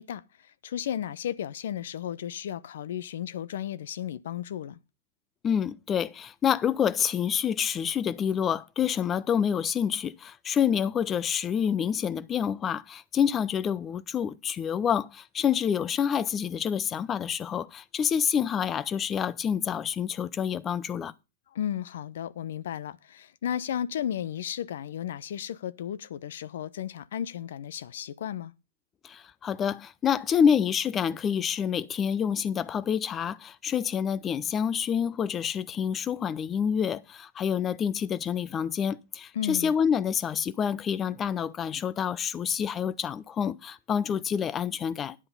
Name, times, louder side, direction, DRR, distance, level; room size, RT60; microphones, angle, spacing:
voice 1, 0.0-4.8 21.5-28.5 39.3-39.7, left 10 dB, 65° left, 0.7 m, -34 dB
voice 2, 5.4-21.1 29.0-45.2, left 8 dB, 25° left, 0.6 m, -27 dB
9.9 x 7.9 x 5.4 m
hypercardioid pair, 110°, 0 cm